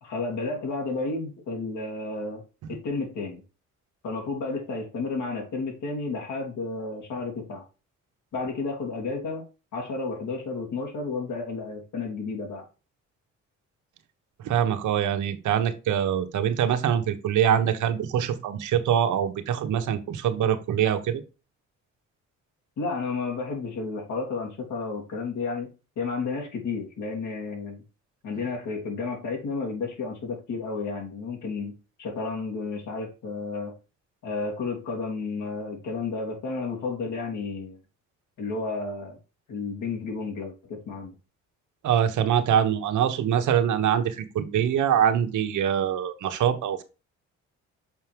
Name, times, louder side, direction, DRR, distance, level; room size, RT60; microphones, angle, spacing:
voice 1, 0.0-2.4 2.7-3.4 4.0-7.6 8.3-9.4 9.7-12.7 22.8-25.7 26.0-27.8 28.2-31.7 32.0-33.7 34.2-37.8 38.4-39.2 39.5-41.2, left 3 dB, 75° left, 3.1 m, -32 dB
voice 2, 14.4-21.2 41.8-46.8, right 9 dB, 75° right, 1.2 m, -24 dB
6.7 x 4.5 x 3.4 m
cardioid pair, 90°, 30 cm